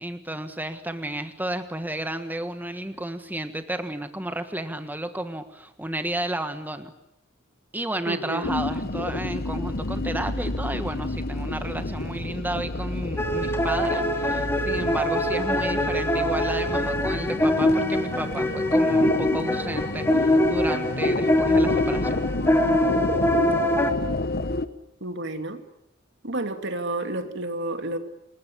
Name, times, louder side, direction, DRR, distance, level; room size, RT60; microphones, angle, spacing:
voice 1, 0.0-6.9 7.7-22.2, right 1 dB, 10° right, 8 dB, 1.5 m, -32 dB
voice 2, 8.1-8.5 25.0-25.6 26.2-28.0, right 2 dB, 65° right, 7 dB, 2.7 m, -30 dB
sound 1, 8.4-24.7, left 2 dB, 55° left, 1.2 m, -29 dB
sound 2, 13.2-23.9, left 1 dB, 10° left, 2.9 m, -24 dB
28.5 x 21.0 x 9.9 m, 0.80 s
head